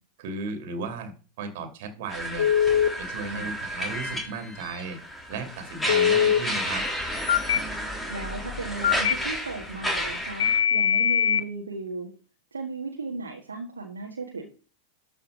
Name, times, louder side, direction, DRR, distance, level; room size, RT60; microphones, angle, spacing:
voice 1, 0.2-1.1 1.4-2.5 3.0-5.0 5.3-6.8, right 4 dB, 50° right, 6 dB, 2.6 m, -35 dB
sound 1, 2.1-10.6, equal, 10° left, 3.4 m, -32 dB
Telephone, 2.4-2.9 5.9-6.4 7.3-7.6 8.8-9.1 10.4-11.4, left 9 dB, 60° left, 0.7 m, -21 dB
voice 2, 3.2-3.6 7.7-12.1 12.5-14.5, right 3 dB, 75° right, -1 dB, 1.7 m, -36 dB
13.0 x 5.6 x 3.9 m, 0.35 s
figure-of-eight pair, 90°, 0 cm